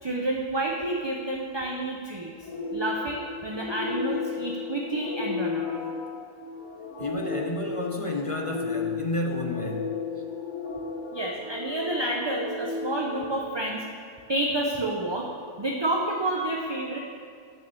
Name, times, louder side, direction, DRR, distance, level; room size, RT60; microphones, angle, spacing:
voice 1, 0.0-2.3 2.7-5.8 11.1-13.8 14.3-15.3 15.6-17.0, right 2 dB, 25° right, -1 dB, 0.6 m, -29 dB
sound 1, 2.4-13.7, left 4 dB, 55° left, 2.2 m, -34 dB
voice 2, 7.0-9.9, left 2 dB, 35° left, 0 dB, 0.6 m, -31 dB
9.4 x 6.0 x 6.8 m, 2.3 s
omnidirectional pair, 1.4 m